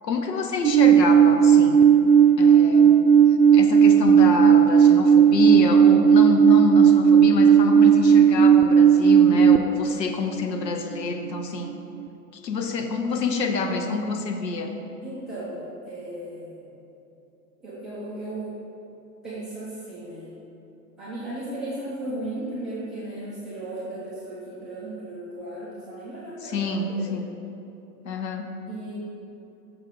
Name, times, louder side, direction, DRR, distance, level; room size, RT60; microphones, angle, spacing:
voice 1, 0.0-1.8 2.4-3.0 3.5-11.7 12.4-14.7 26.4-27.3 28.0-28.5, left 3 dB, 85° left, 5 dB, 1.0 m, -27 dB
Alarm, 0.6-9.6, right 8 dB, 70° right, 0.5 m, -15 dB
voice 2, 15.0-16.7 17.6-18.5 19.2-20.3 21.0-27.2 28.7-28.9, right 1 dB, ahead, -15 dB, 0.4 m, -35 dB
6.5 x 3.9 x 6.2 m, 2.9 s
hypercardioid pair, 135°, 49 cm